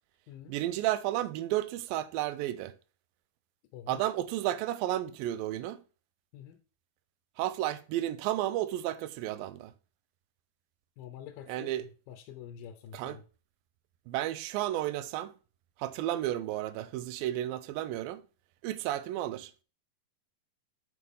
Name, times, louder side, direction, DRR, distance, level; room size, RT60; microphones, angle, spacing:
voice 1, 0.5-2.7 3.9-5.8 7.4-9.7 11.5-11.9 12.9-13.2 14.1-15.3 15.8-18.2 18.6-19.6, right 13 dB, 85° right, 2.3 m, -32 dB
voice 2, 11.0-13.2, left 10 dB, 75° left, 2.4 m, -47 dB
8.4 x 4.7 x 5.3 m
omnidirectional pair, 4.2 m